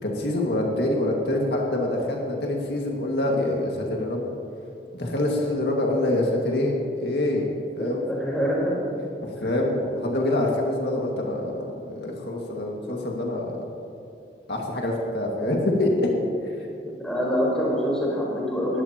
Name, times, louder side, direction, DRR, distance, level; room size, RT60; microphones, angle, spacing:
voice 1, 0.0-4.3 4.9-7.5 7.8-8.1 9.2-13.5 14.5-16.1, left 1 dB, 75° left, -1 dB, 1.9 m, -25 dB
voice 2, 7.7-8.8 9.4-9.5 10.2-10.3 17.0-18.8, equal, 5° left, -6 dB, 4.0 m, -25 dB
20.0 x 14.5 x 2.9 m, 2.5 s
head